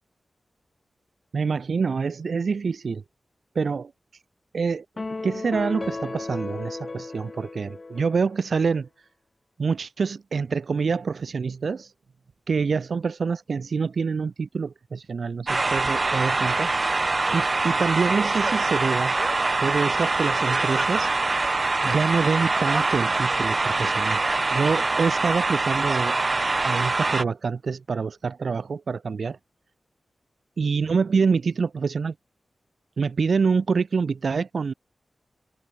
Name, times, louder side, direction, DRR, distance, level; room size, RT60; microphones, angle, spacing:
voice 1, 1.3-3.0 3.5-3.9 4.5-4.8 5.2-8.9 9.6-11.9 12.5-16.7 17.3-19.2 19.6-21.1 21.8-24.2 24.5-26.2 26.6-29.4 30.6-32.1 33.0-34.7, right 5 dB, 75° right, 1.6 m, -26 dB
sound 1, 5.0-8.5, left 3 dB, 40° left, 5.4 m, -34 dB
sound 2, 15.5-27.2, right 3 dB, 40° right, 1.1 m, -24 dB
wide cardioid pair, 85°, 0 cm